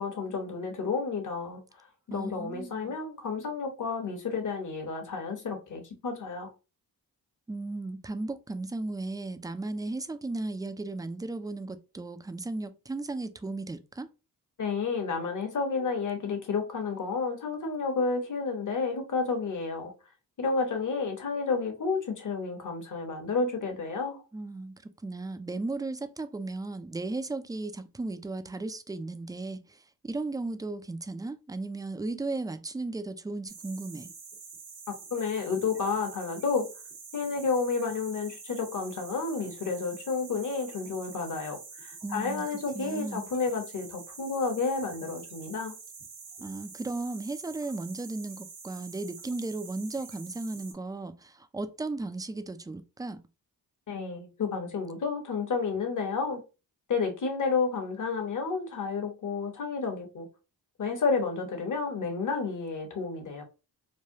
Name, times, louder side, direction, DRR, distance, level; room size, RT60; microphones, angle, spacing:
voice 1, 0.0-6.5 14.6-19.9 20.4-24.2 35.1-36.7 37.1-45.7 53.9-56.4 56.9-60.3 60.8-63.4, left 4 dB, 50° left, 1.1 m, -31 dB
voice 2, 2.1-2.9 7.5-14.1 24.3-34.1 42.0-42.5 42.7-43.3 46.4-53.2, right 2 dB, 10° right, 0.3 m, -35 dB
sound 1, 33.5-50.7, right 5 dB, 80° right, 1.1 m, -47 dB
3.2 x 2.2 x 2.7 m
cardioid pair, 60°, 39 cm